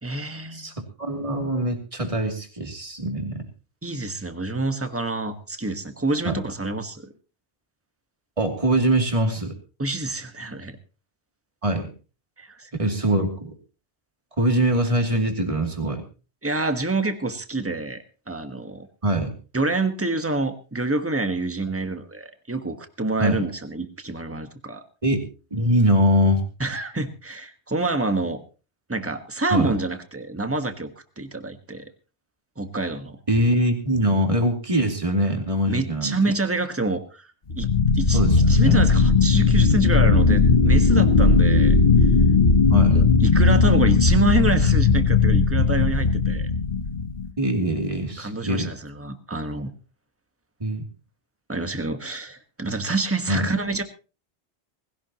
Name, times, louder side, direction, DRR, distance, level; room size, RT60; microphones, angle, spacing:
voice 1, 0.0-0.7 3.8-7.1 9.8-10.8 12.4-12.7 16.4-18.9 19.5-24.8 26.6-28.4 28.9-31.8 32.6-33.2 35.7-37.3 37.5-37.7 38.0-41.8 42.9-46.5 48.2-49.7 51.5-53.8, right 2 dB, 10° right, 7 dB, 1.4 m, -27 dB
voice 2, 0.5-3.4 6.2-6.4 8.4-9.5 11.6-11.9 12.8-13.5 14.4-16.0 19.0-19.3 23.2-23.5 25.0-25.2 25.5-26.4 29.5-29.7 33.3-36.2 38.1-38.8 42.7-43.0 47.4-48.7 50.6-50.8 53.3-53.5, right 1 dB, 30° right, 2 dB, 2.9 m, -23 dB
sound 1, 37.5-47.3, left 4 dB, 45° left, 1.3 m, -17 dB
20.0 x 17.0 x 3.0 m, 0.35 s
omnidirectional pair, 1.1 m